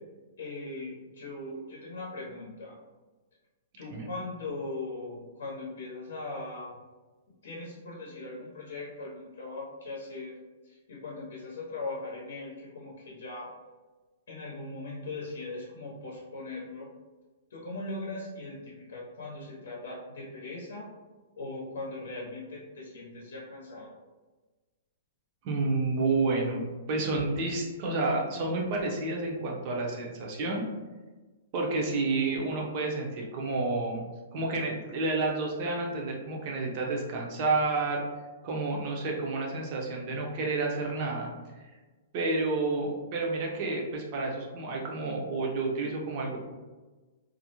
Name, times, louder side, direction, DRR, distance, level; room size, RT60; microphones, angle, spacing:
voice 1, 0.4-2.7 3.8-6.7 7.4-10.3 10.6-13.5 14.3-16.9 17.5-20.9 21.4-23.9, left 2 dB, 85° left, -3 dB, 0.7 m, -39 dB
voice 2, 25.4-30.6 31.5-34.0 34.3-38.0 38.4-41.3 42.1-46.4, right 3 dB, 30° right, -1 dB, 0.5 m, -30 dB
2.4 x 2.0 x 2.8 m, 1.2 s
hypercardioid pair, 170°, 0 cm